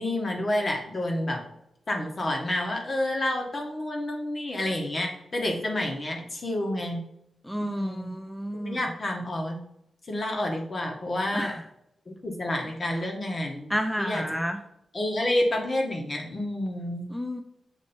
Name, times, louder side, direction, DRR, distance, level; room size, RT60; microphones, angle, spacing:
voice 1, 0.0-1.4 1.9-7.0 7.6-8.1 8.6-9.6 10.1-11.5 12.1-14.2 14.9-17.1, left 1 dB, 45° left, 1 dB, 1.5 m, -29 dB
voice 2, 7.4-8.8 11.3-11.6 13.7-14.6 17.1-17.4, equal, 5° left, 5 dB, 0.5 m, -30 dB
7.2 x 3.0 x 4.3 m, 0.80 s
cardioid pair, 55°, 0 cm